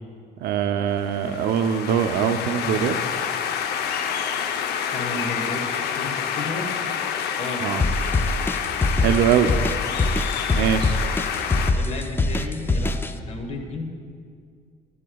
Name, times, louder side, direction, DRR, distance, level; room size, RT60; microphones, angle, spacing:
voice 1, 0.4-2.9 7.6-7.8 9.0-9.5 10.5-11.0, right 8 dB, 70° right, 9 dB, 0.6 m, -22 dB
sound 1, 1.0-11.7, left 8 dB, 75° left, 0.7 m, -28 dB
voice 2, 4.9-5.7 6.0-6.7 7.4-7.6 11.8-13.8, left 2 dB, 40° left, 3 dB, 1.4 m, -32 dB
sound 2, 7.8-13.1, left 2 dB, 15° left, 0.4 m, -23 dB
14.0 x 10.5 x 2.3 m, 2.1 s
cardioid pair, 110°, 17 cm